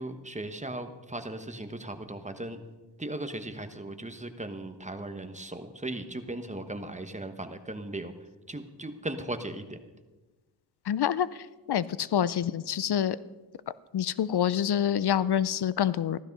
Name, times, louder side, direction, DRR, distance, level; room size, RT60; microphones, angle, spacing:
voice 1, 0.0-2.6 3.0-8.1 8.5-9.8, right 1 dB, 15° right, 8 dB, 1.2 m, -37 dB
voice 2, 10.9-11.3 11.7-13.2 13.9-16.2, left 9 dB, 70° left, 17 dB, 0.6 m, -26 dB
15.0 x 13.0 x 5.4 m, 1.2 s
wide cardioid pair, 95°, 41 cm